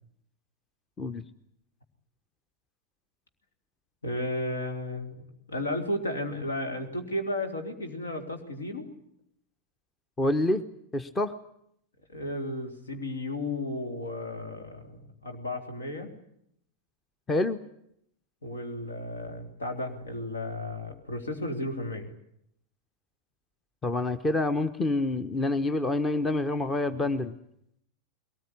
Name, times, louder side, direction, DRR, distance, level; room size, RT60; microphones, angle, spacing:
voice 1, 4.0-8.9 12.1-16.1 18.4-22.1, left 1 dB, 70° left, 5 dB, 3.2 m, -34 dB
voice 2, 10.2-10.6 10.9-11.3 17.3-17.6 23.8-27.3, left 2 dB, 15° left, 13 dB, 1.0 m, -27 dB
22.0 x 19.0 x 9.9 m, 0.75 s
figure-of-eight pair, 90°, 0 cm